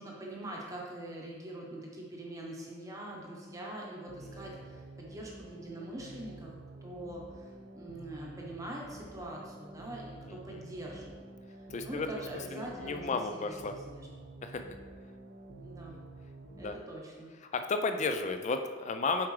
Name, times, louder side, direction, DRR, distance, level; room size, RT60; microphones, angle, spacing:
voice 1, 0.0-6.5 6.8-11.1 11.5-14.1 15.6-16.0 16.6-17.3, right 1 dB, 15° right, -3 dB, 0.9 m, -44 dB
sound 1, 3.1-16.7, right 2 dB, 80° right, 0.8 m, -49 dB
voice 2, 10.3-10.6 11.7-12.1 12.5-13.7 14.4-14.7 16.6-16.8 17.5-19.3, left 3 dB, 35° left, 7 dB, 0.4 m, -33 dB
7.1 x 4.9 x 3.2 m, 1.5 s
head